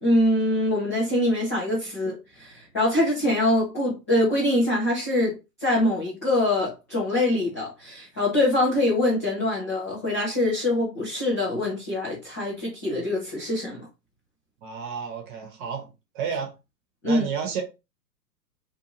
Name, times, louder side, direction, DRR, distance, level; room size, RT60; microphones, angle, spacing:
voice 1, 0.0-5.4 5.6-13.8 17.0-17.3, left 1 dB, 10° left, 0.3 m, -24 dB
voice 2, 14.6-15.9 16.1-16.5 17.1-17.6, right 6 dB, 35° right, 1.0 m, -31 dB
2.6 x 2.5 x 2.9 m
figure-of-eight pair, 105°, 49 cm